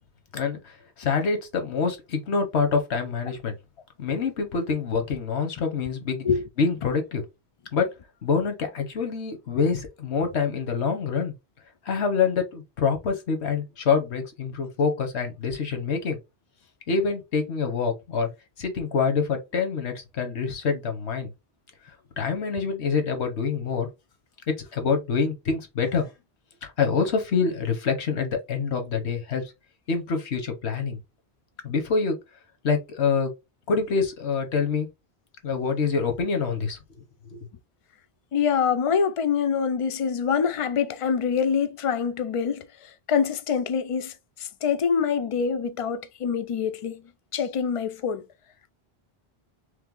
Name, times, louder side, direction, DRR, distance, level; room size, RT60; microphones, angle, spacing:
voice 1, 0.3-3.5 4.0-6.2 6.6-7.2 7.7-7.9 8.2-11.3 11.9-16.2 16.9-18.3 18.6-21.3 22.2-23.9 24.5-26.1 26.6-29.4 29.9-31.0 31.6-32.2 32.6-33.3 33.7-34.9 35.4-36.8 37.3-37.4, left 5 dB, 90° left, 1.2 m, -26 dB
voice 2, 38.3-47.0 47.3-48.2, left 6 dB, 55° left, 0.3 m, -25 dB
3.3 x 3.2 x 3.7 m
omnidirectional pair, 1.1 m